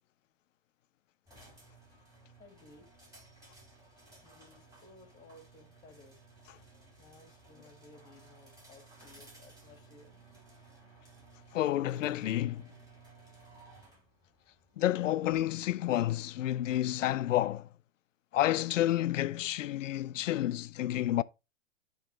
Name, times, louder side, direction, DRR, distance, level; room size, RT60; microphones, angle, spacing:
sound 1, 1.3-15.7, right 3 dB, 10° right, 4.5 m, -57 dB
voice 1, 2.4-2.9 4.2-6.2 7.0-10.1, left 2 dB, 10° left, 1.8 m, -58 dB
voice 2, 11.5-12.7 14.8-17.7 18.3-21.2, left 13 dB, 80° left, 0.5 m, -30 dB
9.0 x 3.2 x 4.2 m
hypercardioid pair, 125°, 37 cm